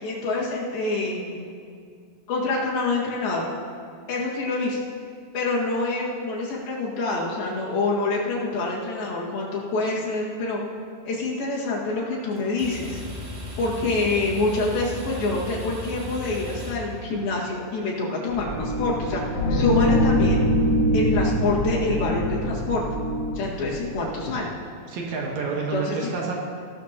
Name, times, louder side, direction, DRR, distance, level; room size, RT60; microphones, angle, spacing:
voice 1, 0.0-1.5 2.3-3.4 4.1-4.8 5.3-10.6 11.1-13.0 13.6-20.5 20.9-22.9 23.4-24.5 25.7-26.1, left 3 dB, 70° left, -5 dB, 3.7 m, -26 dB
sound 1, 12.3-17.5, left 1 dB, 85° right, 4.5 m, -36 dB
sound 2, 18.3-24.3, equal, 50° left, 2.4 m, -23 dB
voice 2, 24.9-26.4, right 4 dB, 60° right, -2 dB, 2.1 m, -29 dB
16.5 x 12.5 x 2.9 m, 2.2 s
omnidirectional pair, 4.4 m